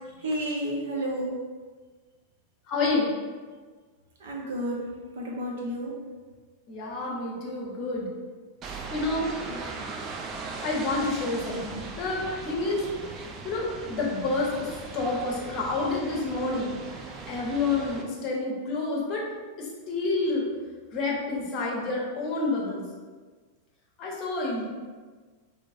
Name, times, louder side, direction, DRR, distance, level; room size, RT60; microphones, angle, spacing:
voice 1, 0.2-1.4 4.2-4.9 5.1-5.9 9.4-9.9, right 1 dB, 60° right, -2 dB, 0.8 m, -31 dB
voice 2, 2.7-3.1 6.7-8.1 8.9-9.7 10.6-12.8 13.4-19.2 19.6-20.5 20.9-22.8 24.0-24.7, left 3 dB, 35° left, -2 dB, 0.8 m, -29 dB
sound 1, 8.6-18.0, right 4 dB, 30° right, 0.4 m, -39 dB
4.5 x 2.1 x 2.6 m, 1.4 s
figure-of-eight pair, 90°, 0 cm